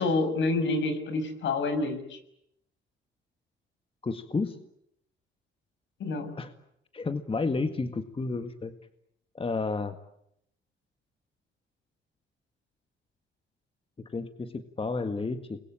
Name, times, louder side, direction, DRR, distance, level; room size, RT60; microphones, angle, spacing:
voice 1, 0.0-2.2 6.0-6.3, left 3 dB, 70° left, 9 dB, 6.2 m, -28 dB
voice 2, 4.0-4.6 6.4-6.5 6.9-8.7 9.4-10.0 14.1-15.6, left 3 dB, 25° left, 9 dB, 1.8 m, -31 dB
29.0 x 22.5 x 8.7 m, 0.76 s
cardioid pair, 90°, 20 cm